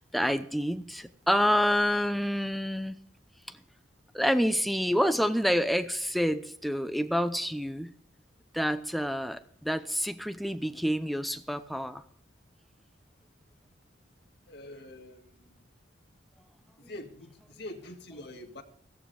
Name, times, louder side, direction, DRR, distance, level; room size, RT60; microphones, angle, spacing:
voice 1, 0.0-3.0 3.5-3.6 4.1-7.9 8.5-12.0, equal, ahead, 10 dB, 0.7 m, -28 dB
voice 2, 14.5-15.5 16.8-18.6, left 1 dB, 60° left, 3 dB, 2.1 m, -45 dB
16.5 x 13.5 x 3.4 m, 0.66 s
head